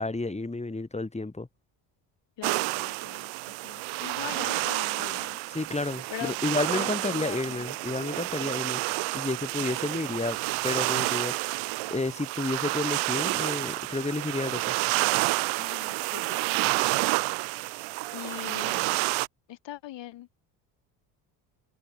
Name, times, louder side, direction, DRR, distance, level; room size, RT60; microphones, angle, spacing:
voice 1, 0.0-1.5 5.5-8.8 9.1-10.4 10.6-11.3 11.9-14.8, left 2 dB, 15° left, 7.7 m, -31 dB
voice 2, 2.4-5.4 6.1-6.4 6.7-7.6 8.4-8.8 15.6-17.2 17.5-19.0 19.5-20.3, left 14 dB, 60° left, 6.0 m, -42 dB
sound 1, 2.4-19.3, right 23 dB, 75° right, 4.6 m, -29 dB
supercardioid pair, 80°, 48 cm